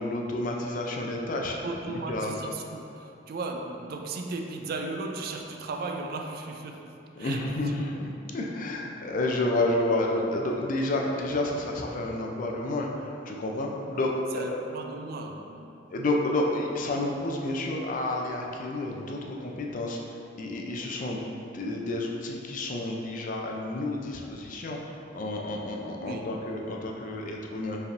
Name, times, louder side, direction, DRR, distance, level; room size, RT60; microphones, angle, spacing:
voice 1, 0.0-1.6 1.9-2.4 7.2-14.6 15.9-20.0 20.4-27.8, left 2 dB, 45° left, 0 dB, 0.4 m, -30 dB
voice 2, 1.4-7.5 7.9-8.1 14.3-15.9 26.0-26.4, right 3 dB, 55° right, 3 dB, 0.3 m, -36 dB
5.0 x 3.3 x 2.5 m, 2.7 s
head